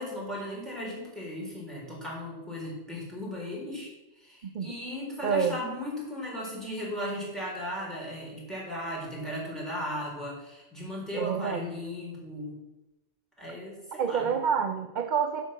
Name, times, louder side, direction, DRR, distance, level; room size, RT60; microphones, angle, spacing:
voice 1, 0.0-3.9 4.2-12.6 13.4-14.4, left 1 dB, ahead, -5 dB, 4.0 m, -36 dB
voice 2, 4.4-4.7 5.2-5.6 11.1-11.6 14.0-15.5, right 7 dB, 50° right, 6 dB, 0.7 m, -28 dB
10.5 x 5.4 x 7.4 m, 1.0 s
omnidirectional pair, 1.2 m